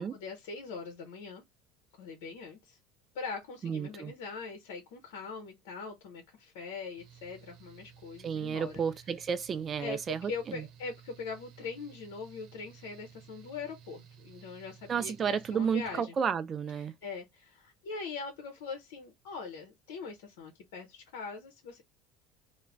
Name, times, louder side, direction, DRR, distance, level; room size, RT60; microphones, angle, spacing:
voice 1, 0.0-1.4 2.0-2.8 3.1-8.7 9.8-16.1 16.8-21.8, left 4 dB, 80° left, 0.7 m, -42 dB
voice 2, 3.6-4.1 8.2-10.6 14.9-16.9, right 7 dB, 40° right, 0.3 m, -32 dB
Mechanical fan, 7.0-16.0, right 8 dB, 65° right, 0.8 m, -56 dB
2.4 x 2.1 x 3.2 m
supercardioid pair, 95°, 0 cm